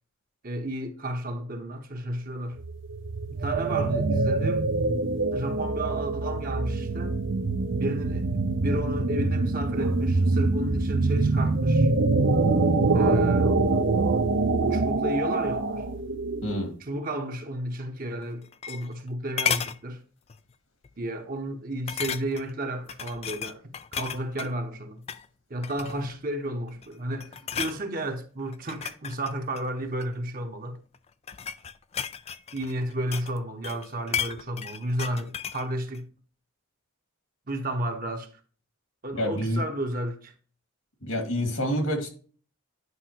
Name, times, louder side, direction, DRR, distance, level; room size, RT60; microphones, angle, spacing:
voice 1, 0.4-2.6 3.3-4.7 5.3-7.2 7.7-8.3 8.6-11.9 12.9-13.5 14.6-15.8 16.8-20.0 21.0-25.0 25.5-30.8 32.5-36.1 37.5-38.3 39.0-40.3, right 1 dB, 40° right, 1.1 m, -32 dB
sound 1, 2.6-16.7, right 3 dB, 60° right, 0.7 m, -25 dB
voice 2, 16.4-16.7 39.2-39.6 41.0-42.1, equal, 75° left, 2.2 m, -27 dB
sound 2, 18.2-19.1 19.4-19.8 20.3-20.5 20.8-20.9 21.9-22.5 22.9-24.5 25.0-25.2 25.6-26.2 26.7-26.9 27.2-27.8 28.5-30.1 30.9-33.4 33.6-35.7 35.9-36.0, left 8 dB, 30° left, 0.3 m, -33 dB
9.7 x 5.5 x 3.0 m
head